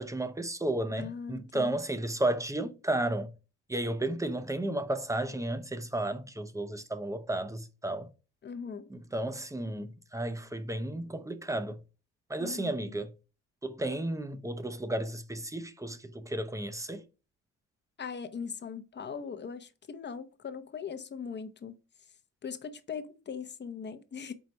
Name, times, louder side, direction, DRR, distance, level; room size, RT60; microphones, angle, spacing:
voice 1, 0.0-3.3 3.7-8.1 8.9-11.8 12.3-13.1 13.6-17.1, right 1 dB, 10° right, 0.7 m, -33 dB
voice 2, 1.0-1.7 8.4-8.9 12.4-12.9 18.0-21.7 22.4-24.3, left 6 dB, 35° left, 0.8 m, -40 dB
4.7 x 4.0 x 5.2 m
cardioid pair, 90°, 30 cm